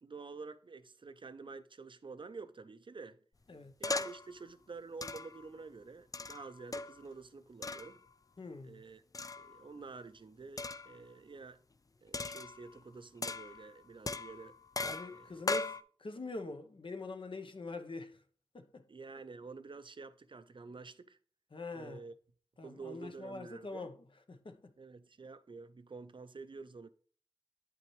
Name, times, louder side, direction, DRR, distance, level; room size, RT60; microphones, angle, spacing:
voice 1, 0.0-3.2 3.8-8.0 8.6-9.0 9.4-11.6 12.0-14.6 15.1-15.4 18.9-21.2 21.7-22.1 22.6-23.9 24.8-26.9, right 4 dB, 55° right, 0.5 m, -49 dB
sound 1, 3.8-4.3 5.0-5.5 6.1-7.1 7.6-8.0 9.1-9.6 10.6-11.0 12.1-12.8 13.2-13.7 14.1-15.8, left 3 dB, 35° left, 0.4 m, -38 dB
voice 2, 8.4-8.8 14.8-18.2 18.5-18.9 21.5-22.0 22.6-23.9 24.3-24.7, left 3 dB, 60° left, 0.8 m, -44 dB
8.6 x 5.9 x 3.1 m
wide cardioid pair, 60°, 10 cm